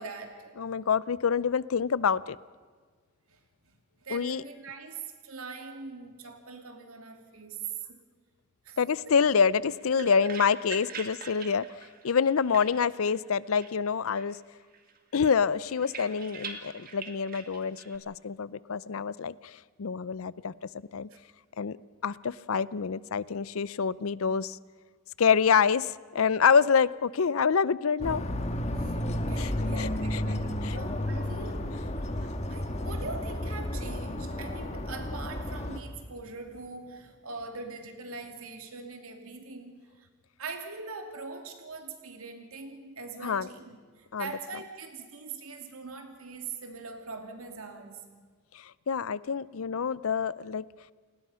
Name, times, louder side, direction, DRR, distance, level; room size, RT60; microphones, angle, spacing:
voice 1, 0.0-0.6 3.3-3.4 4.0-8.0 8.6-8.8 9.1-9.2 10.0-10.3 10.7-11.3 21.1-21.2 28.7-40.1 40.4-48.2, right 4 dB, 90° right, 5 dB, 2.6 m, -42 dB
voice 2, 0.6-2.4 4.1-4.4 8.8-11.7 12.0-14.4 15.1-20.5 20.9-21.1 21.6-21.8 22.0-24.6 25.2-28.2 29.4-29.5 29.8-30.2 30.6-30.8 43.2-43.5 44.1-44.3 48.9-50.6, left 6 dB, 80° left, 19 dB, 0.5 m, -26 dB
sound 1, 9.5-13.3 13.5-14.4 14.7-18.0, right 5 dB, 40° right, 1.9 m, -45 dB
sound 2, 28.0-35.8, left 1 dB, 30° left, 1.4 m, -32 dB
29.0 x 19.5 x 5.7 m, 1.5 s
head